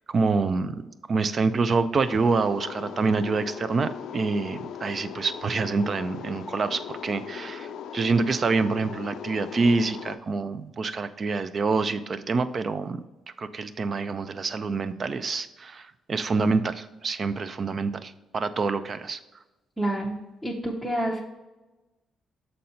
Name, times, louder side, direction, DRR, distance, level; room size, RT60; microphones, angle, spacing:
voice 1, 0.1-0.8 1.1-13.0 13.4-19.2, right 4 dB, 45° right, 12 dB, 0.4 m, -26 dB
sound 1, 2.0-10.1, left 8 dB, 75° left, 0.4 m, -39 dB
voice 2, 19.8-21.2, right 1 dB, 5° right, -2 dB, 0.7 m, -29 dB
6.5 x 4.1 x 4.2 m, 1.1 s
cardioid pair, 90°, 0 cm